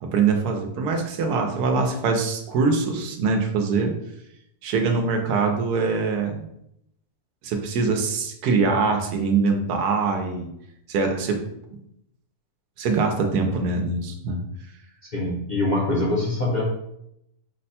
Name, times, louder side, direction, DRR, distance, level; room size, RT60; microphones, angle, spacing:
voice 1, 0.0-4.0 4.6-6.5 7.4-10.5 10.9-11.4 12.8-14.4, right 4 dB, 80° right, 4 dB, 1.2 m, -23 dB
voice 2, 15.1-16.6, left 2 dB, 45° left, -4 dB, 0.6 m, -24 dB
4.9 x 2.2 x 4.1 m, 0.78 s
omnidirectional pair, 1.7 m